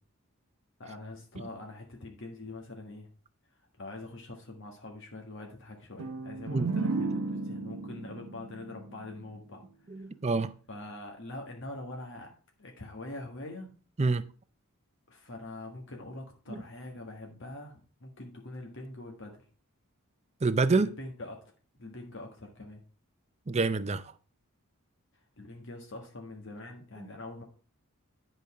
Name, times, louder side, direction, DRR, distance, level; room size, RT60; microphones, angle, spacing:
voice 1, 0.8-3.1 3.8-9.6 10.0-10.1 10.7-12.3 12.6-13.7 15.1-19.4 20.8-21.5 21.8-22.8 25.4-27.4, left 2 dB, 55° left, 1.6 m, -44 dB
sound 1, 6.0-9.7, right 3 dB, 90° right, 0.7 m, -34 dB
voice 2, 9.9-10.5 14.0-14.2 16.5-16.6 20.4-20.9 23.5-24.0, right 3 dB, 30° right, 0.5 m, -27 dB
11.0 x 5.3 x 4.8 m
head